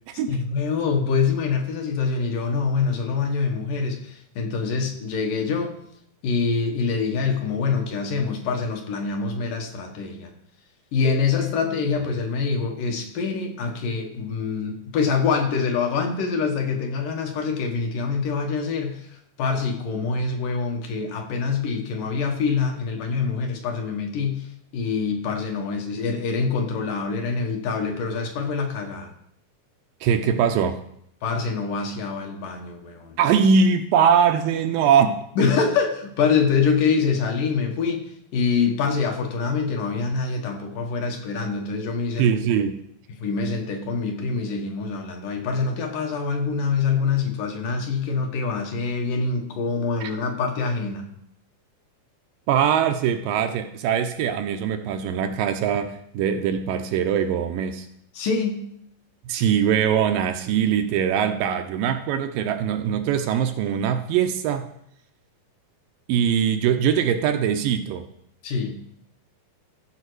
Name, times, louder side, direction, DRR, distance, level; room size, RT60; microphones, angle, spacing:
voice 1, 0.3-5.8 6.2-10.3 10.9-24.5 24.7-29.1 31.2-33.2 35.4-42.3 43.1-51.1 58.2-58.6 68.4-68.8, left 5 dB, 70° left, 2 dB, 2.7 m, -25 dB
voice 2, 30.0-30.8 33.2-35.2 42.2-42.8 50.0-50.1 52.5-57.9 59.3-64.7 66.1-68.1, right 7 dB, 80° right, 7 dB, 2.2 m, -22 dB
14.5 x 5.7 x 4.7 m, 0.72 s
omnidirectional pair, 4.2 m